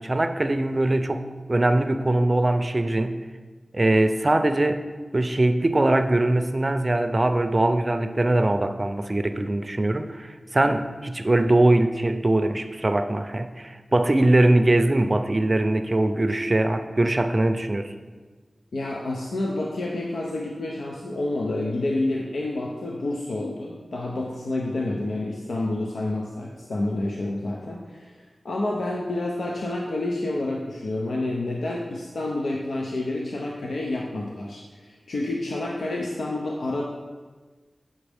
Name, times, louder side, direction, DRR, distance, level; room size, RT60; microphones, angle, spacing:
voice 1, 0.0-3.2 3.7-4.9 5.1-17.9, right 1 dB, 40° right, 8 dB, 0.4 m, -22 dB
voice 2, 18.7-28.2 28.4-36.8, left 2 dB, 90° left, -2 dB, 0.5 m, -29 dB
7.2 x 5.3 x 3.4 m, 1.4 s
cardioid pair, 45°, 0 cm